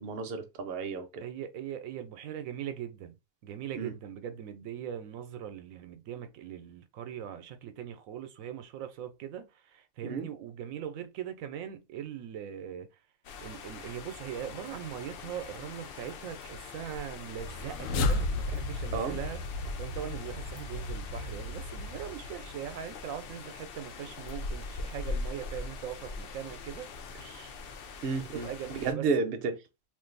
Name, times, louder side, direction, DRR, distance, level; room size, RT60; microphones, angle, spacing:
voice 1, 0.0-1.2 3.8-3.9 10.0-10.3 18.9-19.2 28.0-28.5 28.7-29.6, right 4 dB, 55° right, 0.7 m, -32 dB
voice 2, 1.2-3.2 3.4-12.9 13.4-27.7 28.3-29.1, right 9 dB, 85° right, 1.0 m, -40 dB
sound 1, 13.2-28.9, left 4 dB, 60° left, 0.6 m, -42 dB
sound 2, 17.3-22.6, left 2 dB, 80° left, 1.0 m, -34 dB
2.5 x 2.5 x 3.8 m
omnidirectional pair, 1.4 m